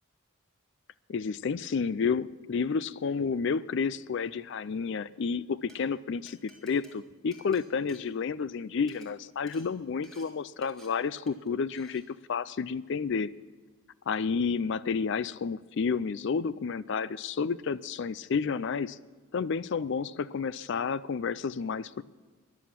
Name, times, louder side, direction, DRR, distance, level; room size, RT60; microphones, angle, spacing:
voice 1, 1.1-13.3 14.1-19.0 19.3-22.0, left 5 dB, 55° left, 18 dB, 0.4 m, -31 dB
Glass, 5.7-5.8 6.3-8.5 8.8-9.1 9.5-9.7 10.0-10.3 10.6-10.9 11.3-11.5 11.7-12.0, right 1 dB, ahead, 2.1 m, -56 dB
14.0 x 10.5 x 6.0 m, 1.4 s
head